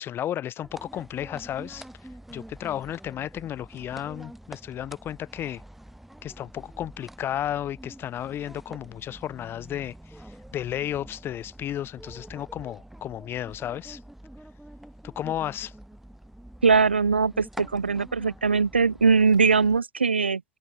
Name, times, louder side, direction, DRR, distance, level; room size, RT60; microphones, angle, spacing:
voice 1, 0.0-1.8 2.3-5.6 6.2-9.9 10.5-14.0 15.0-15.7, left 11 dB, 40° left, 4.1 m, -33 dB
sound 1, 0.6-19.8, right 1 dB, 5° right, 4.6 m, -46 dB
voice 2, 16.6-20.4, right 5 dB, 90° right, 0.5 m, -21 dB
open air
figure-of-eight pair, 75°, 6 cm